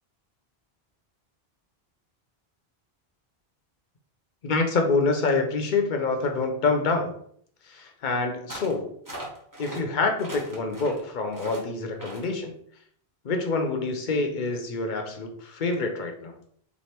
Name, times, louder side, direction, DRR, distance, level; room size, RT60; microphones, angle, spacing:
voice 1, 4.4-7.1 7.7-8.9 9.6-12.5 13.2-16.3, left 3 dB, 55° left, 4 dB, 0.8 m, -26 dB
sound 1, 8.5-8.8 9.1-9.8 10.2-11.0 11.3-11.6 12.0-12.3, right 1 dB, 20° right, 0.9 m, -39 dB
3.3 x 2.5 x 4.3 m, 0.63 s
omnidirectional pair, 1.1 m